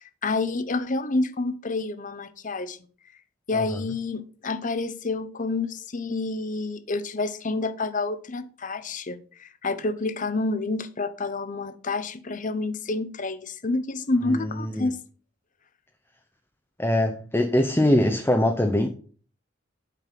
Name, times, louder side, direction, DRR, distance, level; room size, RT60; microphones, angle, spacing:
voice 1, 0.0-2.8 3.5-15.0 17.1-17.2, left 3 dB, 45° left, 0.8 m, -28 dB
voice 2, 3.5-3.8 14.3-14.9 16.8-18.9, left 1 dB, 10° left, 0.8 m, -23 dB
9.2 x 5.4 x 5.9 m
head